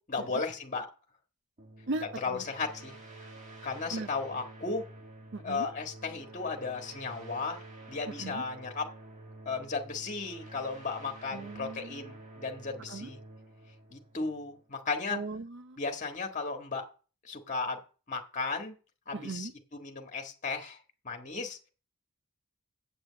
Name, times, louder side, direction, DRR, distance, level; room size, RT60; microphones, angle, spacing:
voice 1, 0.1-0.9 2.2-2.9 3.6-4.8 5.4-7.6 7.9-8.9 9.4-13.2 13.9-15.2 15.8-16.9 17.2-17.8 18.1-18.8 19.1-20.8 21.0-21.6, left 4 dB, 35° left, 1.6 m, -35 dB
sound 1, 1.6-14.9, right 2 dB, 35° right, 1.7 m, -49 dB
voice 2, 1.9-2.4 3.9-4.1 5.3-5.7 8.1-8.4 11.3-12.1 12.9-13.1 15.1-15.8 19.1-19.5, right 3 dB, 55° right, 0.7 m, -38 dB
8.0 x 6.3 x 7.5 m
head